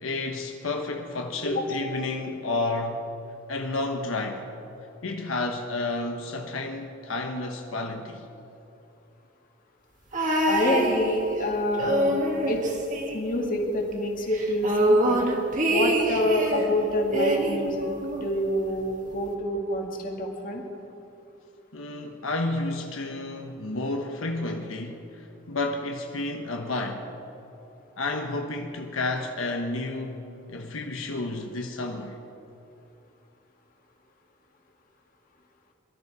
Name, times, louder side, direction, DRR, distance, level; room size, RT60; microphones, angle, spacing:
voice 1, 0.0-3.0 3.5-4.5 5.0-8.3 21.7-27.1 28.0-30.2 30.5-32.2, left 2 dB, 85° left, 1.1 m, -31 dB
sound 1, 10.1-11.4 11.7-13.7 13.9-14.0 14.3-16.7 17.1-18.4 19.3-19.4, right 1 dB, 40° right, 1.8 m, -25 dB
voice 2, 10.5-12.2 12.5-12.6 13.1-15.2 15.7-20.6, equal, 40° left, 2.0 m, -27 dB
22.5 x 12.5 x 4.8 m
head